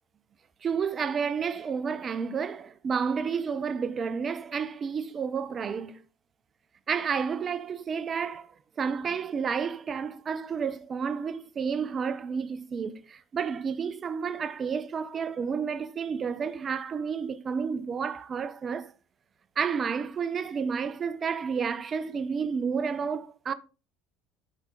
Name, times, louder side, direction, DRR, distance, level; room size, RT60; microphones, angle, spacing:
voice 1, 0.6-6.0 6.9-18.9 19.6-23.5, right 6 dB, 35° right, 1.0 m, -31 dB
13.0 x 6.1 x 3.9 m
hypercardioid pair, 75°, 0 cm